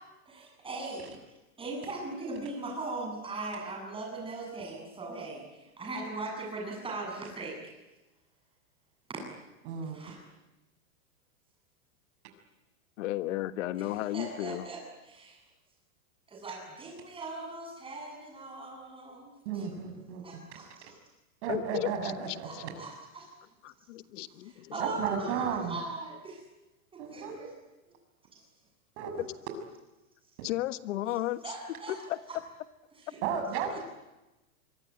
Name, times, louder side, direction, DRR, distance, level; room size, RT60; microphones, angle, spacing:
voice 1, 0.2-1.1 1.6-7.6 9.1-9.2 9.9-10.2 13.8-13.9 14.1-14.8 15.0-15.4 16.3-19.7 20.2-21.0 22.4-23.3 24.4-26.4 26.9-27.5 28.3-28.4 31.4-32.0 32.3-32.4 33.1-33.2 33.7-33.8, right 3 dB, 10° right, 1 dB, 8.0 m, -39 dB
voice 2, 9.6-10.0 19.4-20.4 21.4-22.7 24.8-25.8 27.0-27.3 29.0-29.2 33.2-33.8, right 7 dB, 50° right, 6 dB, 6.7 m, -33 dB
voice 3, 13.0-14.7 21.5-22.3 23.6-25.0 29.2-29.3 30.4-31.4 31.9-32.2, left 15 dB, 60° left, 12 dB, 1.5 m, -34 dB
25.0 x 23.5 x 9.6 m, 1.0 s
supercardioid pair, 155°, 43 cm